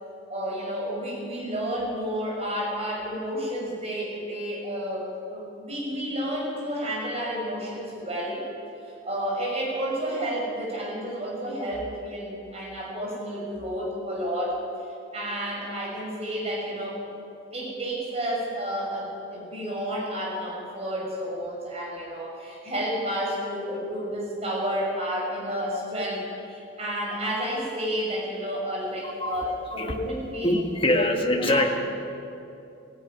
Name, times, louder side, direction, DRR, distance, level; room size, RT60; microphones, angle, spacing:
voice 1, 0.3-8.4 8.8-14.6 15.1-17.0 17.5-30.5 30.8-31.7, equal, 30° right, -3 dB, 6.5 m, -31 dB
voice 2, 29.0-29.4 29.7-30.0 30.4-31.7, left 1 dB, 25° left, 3 dB, 1.6 m, -24 dB
17.0 x 16.5 x 9.4 m, 2.8 s
head